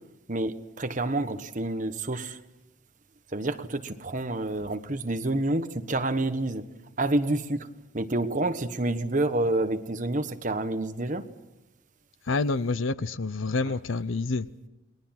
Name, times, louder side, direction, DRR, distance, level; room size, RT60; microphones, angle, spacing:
voice 1, 0.3-2.4 3.3-6.6 7.0-7.7 7.9-11.2, right 2 dB, 40° right, 1.3 m, -28 dB
voice 2, 12.3-14.5, left 3 dB, 70° left, 0.8 m, -28 dB
29.5 x 21.0 x 5.9 m
head